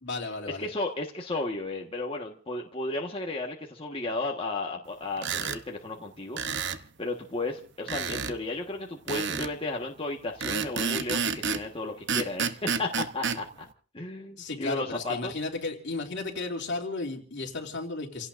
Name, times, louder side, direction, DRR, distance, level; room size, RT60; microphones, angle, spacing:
voice 1, 0.0-0.7 14.4-18.3, left 3 dB, 60° left, 1 dB, 2.9 m, -34 dB
voice 2, 0.6-6.4 7.0-13.7 13.9-15.3, left 2 dB, 30° left, 0 dB, 1.5 m, -34 dB
sound 1, 5.2-5.6 6.4-6.8 7.9-8.4 9.1-9.5 10.4-11.7 12.1-13.4, right 6 dB, 60° right, 0.9 m, -30 dB
29.5 x 17.0 x 2.6 m, 0.40 s
head